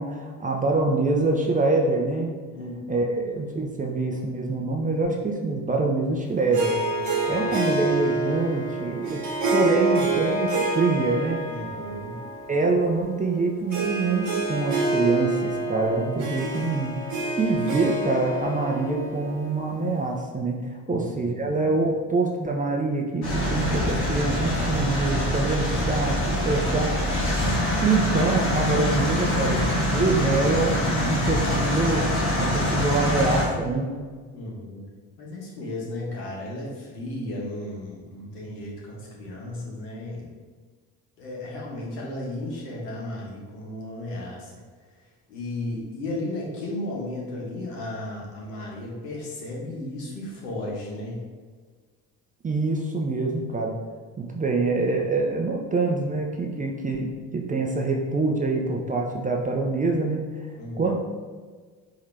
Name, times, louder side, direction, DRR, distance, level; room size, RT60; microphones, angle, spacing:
voice 1, 0.0-2.3 2.9-6.7 7.2-9.2 9.5-11.4 12.5-17.1 17.4-20.6 20.9-27.2 27.8-32.0 32.4-33.9 52.4-53.7 54.2-60.2 60.8-61.0, right 3 dB, 20° right, 0 dB, 0.5 m, -25 dB
voice 2, 2.5-3.1 6.9-7.5 11.5-12.2 20.9-21.4 34.3-34.8 35.2-40.3 41.2-44.5 45.3-51.2 60.6-61.0, left 1 dB, 75° left, -3 dB, 1.1 m, -34 dB
Harp, 6.5-20.2, right 2 dB, 40° right, 1.1 m, -28 dB
sound 1, 23.2-33.5, left 1 dB, 50° left, 1.5 m, -24 dB
4.9 x 2.7 x 3.3 m, 1.5 s
figure-of-eight pair, 50°, 48 cm